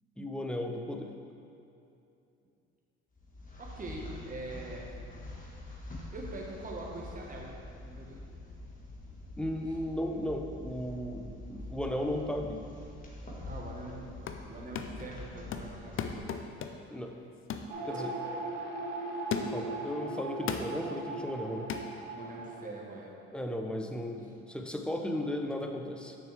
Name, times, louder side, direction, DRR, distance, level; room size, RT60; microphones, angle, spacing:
voice 1, 0.2-1.1 9.4-12.6 16.9-17.1 17.8-18.2 19.5-21.7 23.3-26.2, left 1 dB, 5° left, 3 dB, 0.6 m, -35 dB
sound 1, 3.1-16.2, left 2 dB, 25° left, 1.6 m, -45 dB
voice 2, 3.6-4.9 6.1-7.5 7.8-8.2 13.5-16.4 18.4-18.6 22.1-23.1, right 2 dB, 30° right, -2 dB, 1.3 m, -43 dB
sound 2, 14.0-14.5 14.7-15.1 15.5-16.9 17.5-17.7 18.2-18.4 19.3-19.7 20.5-20.8 21.7-21.9, left 7 dB, 45° left, 0.6 m, -36 dB
sound 3, 17.7-22.7, right 2 dB, 80° right, 0.8 m, -38 dB
6.7 x 6.1 x 3.4 m, 2.7 s
supercardioid pair, 70°, 29 cm